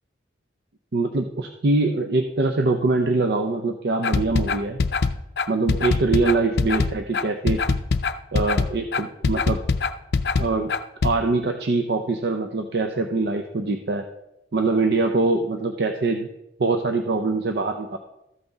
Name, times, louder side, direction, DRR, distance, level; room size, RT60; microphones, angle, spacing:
voice 1, 0.9-4.8 5.5-7.8 8.3-9.6 10.4-10.7 11.0-14.0 14.5-16.3 16.6-18.0, right 3 dB, 60° right, 5 dB, 0.6 m, -23 dB
sound 1, 4.0-11.1, left 4 dB, 60° left, 0.5 m, -22 dB
13.5 x 5.9 x 3.9 m, 0.89 s
head